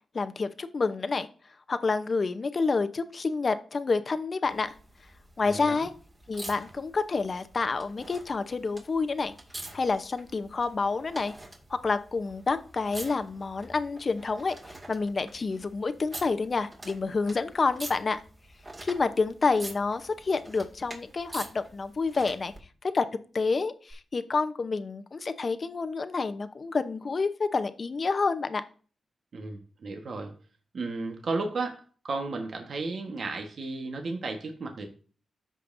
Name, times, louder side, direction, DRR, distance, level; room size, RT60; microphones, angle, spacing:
voice 1, 0.1-1.3 1.7-4.7 5.4-5.9 6.3-9.3 9.7-11.3 11.7-18.2 18.8-22.5 22.9-23.1 23.3-28.6, left 4 dB, 45° left, 10 dB, 0.8 m, -28 dB
sound 1, 4.4-22.6 23.9-24.0, right 1 dB, 30° right, 2.2 m, -46 dB
voice 2, 5.4-5.9 29.3-30.3 30.7-34.9, right 3 dB, 60° right, 3 dB, 1.3 m, -34 dB
13.5 x 5.2 x 2.6 m, 0.39 s
cardioid pair, 80°, 0 cm